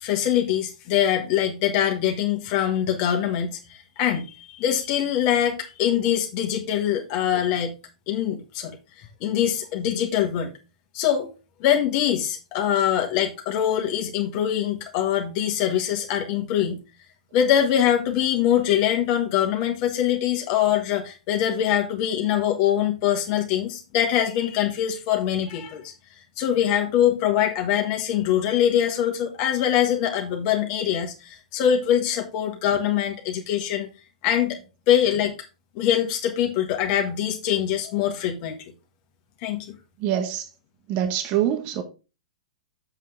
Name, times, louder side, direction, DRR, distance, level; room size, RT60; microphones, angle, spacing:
voice 1, 0.0-7.7 8.1-10.5 10.9-11.3 11.6-16.8 17.3-25.9 26.4-33.9 34.2-34.6 34.9-35.3 35.7-38.7 39.4-39.7, left 10 dB, 45° left, 1.6 m, -23 dB
voice 2, 40.0-40.4 40.9-41.8, right 10 dB, 40° right, 1.3 m, -24 dB
7.5 x 7.4 x 3.4 m
hypercardioid pair, 115°, 4 cm